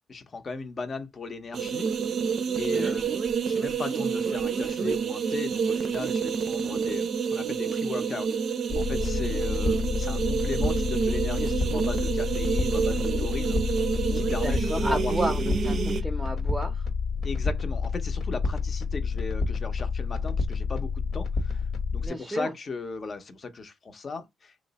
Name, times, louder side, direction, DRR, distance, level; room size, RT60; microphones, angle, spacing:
voice 1, 0.1-1.9 2.6-3.1 3.4-13.6 14.1-15.1 15.4-15.5 17.2-21.6 21.9-24.5, left 4 dB, 40° left, 0.6 m, -37 dB
sound 1, 1.5-16.0, right 6 dB, 55° right, 0.5 m, -28 dB
sound 2, 8.7-22.1, left 4 dB, 60° left, 1.0 m, -29 dB
voice 2, 14.3-16.9 22.0-22.5, right 1 dB, 10° right, 0.6 m, -32 dB
3.1 x 2.0 x 4.0 m
cardioid pair, 90°, 0 cm